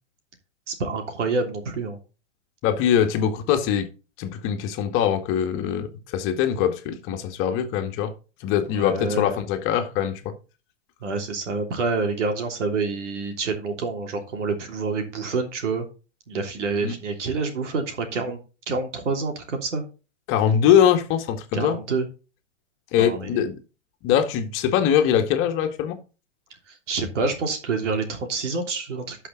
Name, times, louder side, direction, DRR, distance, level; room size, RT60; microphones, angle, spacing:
voice 1, 0.7-2.0 8.8-9.4 11.0-15.9 16.3-18.4 18.7-19.8 21.5-22.1 23.0-23.4 26.9-29.3, right 4 dB, 80° right, 3.2 m, -27 dB
voice 2, 2.6-3.9 4.2-8.1 8.4-10.3 16.8-17.0 20.3-21.8 22.9-23.5 24.0-26.0, left 9 dB, 35° left, 1.8 m, -22 dB
12.0 x 5.8 x 3.9 m
hypercardioid pair, 130°, 36 cm